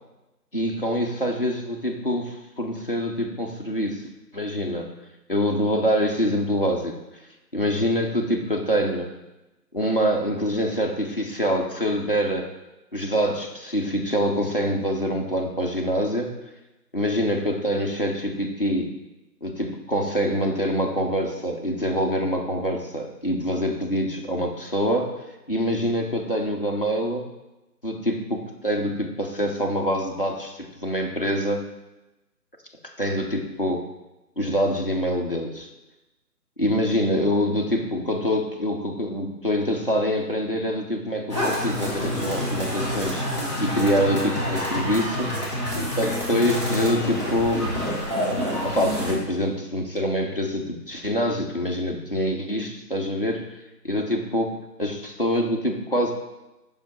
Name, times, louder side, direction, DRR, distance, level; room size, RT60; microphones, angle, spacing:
voice 1, 0.5-4.0 4.3-4.9 5.3-7.0 7.5-9.1 9.7-12.5 12.9-16.3 16.9-18.9 19.4-25.1 25.5-27.3 27.8-31.6 33.0-33.8 34.4-35.7 36.6-43.3 43.6-45.3 46.0-47.8 48.6-53.4 53.8-56.1, equal, 35° left, 0 dB, 0.6 m, -25 dB
sound 1, 41.3-49.1, equal, 20° right, 1.0 m, -27 dB
7.0 x 5.3 x 4.1 m, 1.0 s
figure-of-eight pair, 160°, 49 cm